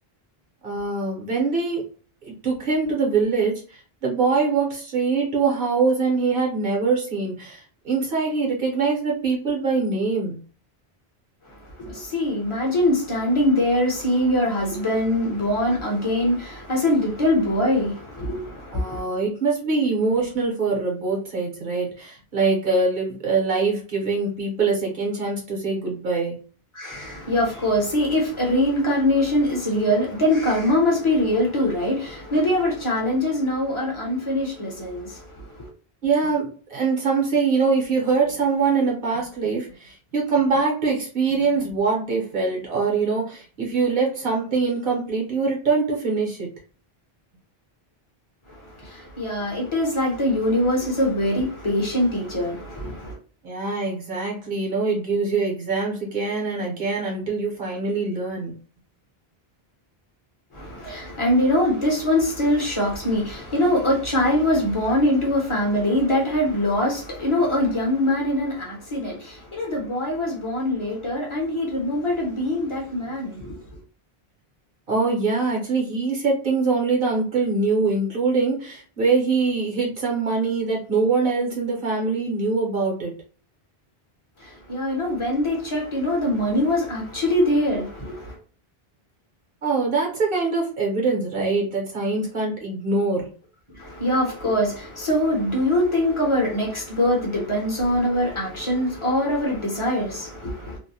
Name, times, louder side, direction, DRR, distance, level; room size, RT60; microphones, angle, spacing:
voice 1, 0.6-1.8 2.2-10.4 18.7-26.4 36.0-46.5 53.4-58.5 74.9-83.1 89.6-93.3, right 4 dB, 60° right, 1.1 m, -23 dB
voice 2, 11.5-19.0 26.7-35.7 48.5-53.2 60.5-73.6 84.4-88.4 93.7-100.8, left 1 dB, 30° left, 0.8 m, -23 dB
2.6 x 2.1 x 2.7 m
omnidirectional pair, 1.0 m